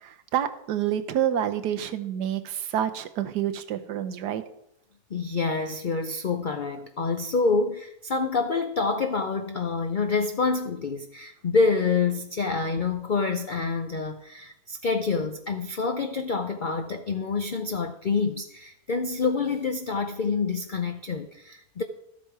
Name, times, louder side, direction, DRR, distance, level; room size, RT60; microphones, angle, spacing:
voice 1, 0.0-4.4, right 10 dB, 80° right, 1.4 m, -28 dB
voice 2, 5.1-21.8, left 4 dB, 75° left, 0.4 m, -27 dB
13.0 x 7.4 x 4.7 m
omnidirectional pair, 1.7 m